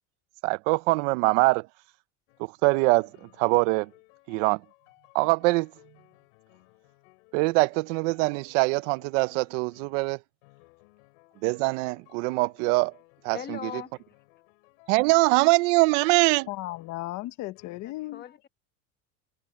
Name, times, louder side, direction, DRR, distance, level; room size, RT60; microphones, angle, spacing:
voice 1, 0.4-1.7 2.4-3.9 4.3-4.6 5.1-5.7 7.3-10.2 11.4-12.9 13.2-13.6 14.9-16.5, right 25 dB, 75° right, 0.7 m, -23 dB
sound 1, 2.3-2.5 2.8-17.2 17.6-17.8, left 26 dB, 85° left, 4.5 m, -59 dB
voice 2, 13.3-13.9 16.1-16.2 17.8-18.5, left 9 dB, 25° left, 1.4 m, -40 dB
voice 3, 16.5-18.2, left 17 dB, 50° left, 1.1 m, -35 dB
cardioid pair, 155°, 37 cm